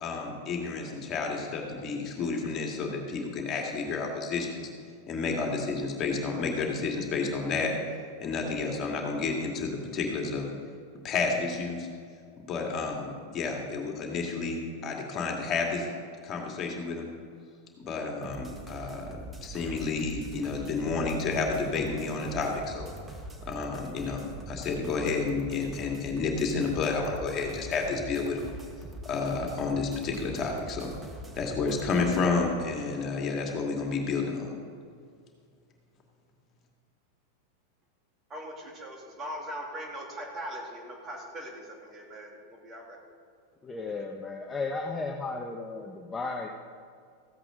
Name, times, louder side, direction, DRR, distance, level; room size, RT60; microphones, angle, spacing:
voice 1, 0.0-4.7 5.1-7.7 8.2-10.5 11.0-11.9 12.5-15.8 16.2-17.1 17.8-22.9 23.5-28.5 29.0-30.9 31.4-34.5, left 4 dB, 35° left, 1 dB, 2.2 m, -30 dB
sound 1, 18.2-32.3, right 1 dB, 10° right, 1.4 m, -43 dB
voice 2, 38.3-43.0, equal, 30° right, 0 dB, 2.6 m, -40 dB
voice 3, 43.6-46.5, left 3 dB, 15° left, 1 dB, 0.9 m, -34 dB
15.0 x 8.2 x 3.8 m, 2.2 s
hypercardioid pair, 110°, 0 cm